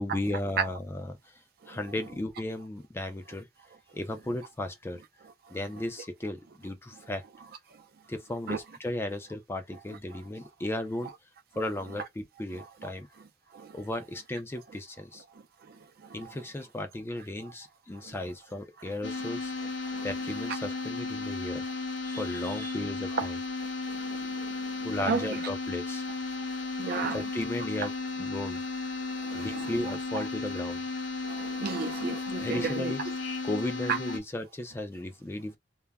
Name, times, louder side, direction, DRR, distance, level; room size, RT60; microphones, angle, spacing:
voice 1, 0.0-1.4 1.7-3.5 3.9-5.0 5.5-7.2 8.1-11.1 11.6-13.1 13.7-15.2 16.1-19.5 20.0-21.6 22.0-23.4 24.8-26.0 27.1-27.9 28.2-28.6 29.3-30.8 32.4-33.0 33.4-35.6, left 1 dB, 15° left, 0.3 m, -35 dB
sound 1, 19.0-34.2, left 3 dB, 80° left, 0.6 m, -34 dB
voice 2, 25.1-25.4 26.8-27.2 29.2-29.7 30.1-30.2 31.2-32.9, right 5 dB, 55° right, 0.4 m, -32 dB
2.2 x 2.0 x 3.3 m
head